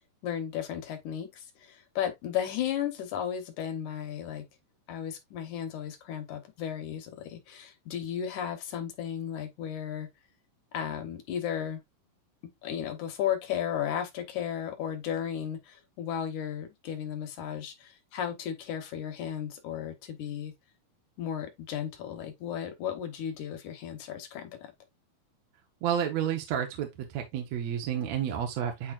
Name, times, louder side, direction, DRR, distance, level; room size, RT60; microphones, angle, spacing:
voice 1, 0.2-4.4 4.9-10.1 10.7-11.8 12.6-20.5 21.2-24.7, left 9 dB, 70° left, 2.3 m, -34 dB
voice 2, 25.8-28.9, right 9 dB, 65° right, 2.0 m, -30 dB
8.8 x 4.4 x 2.4 m
omnidirectional pair, 3.9 m